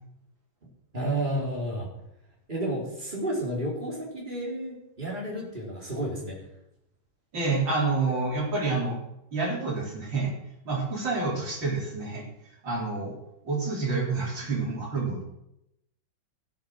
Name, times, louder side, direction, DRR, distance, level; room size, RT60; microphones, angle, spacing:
voice 1, 0.9-1.9 2.5-6.4, right 1 dB, 25° right, -3 dB, 4.2 m, -31 dB
voice 2, 7.3-9.0 9.3-10.3 10.7-12.3 12.6-13.2 13.4-15.2, right 3 dB, 65° right, -2 dB, 4.3 m, -28 dB
14.5 x 8.5 x 6.3 m, 0.83 s
omnidirectional pair, 2.2 m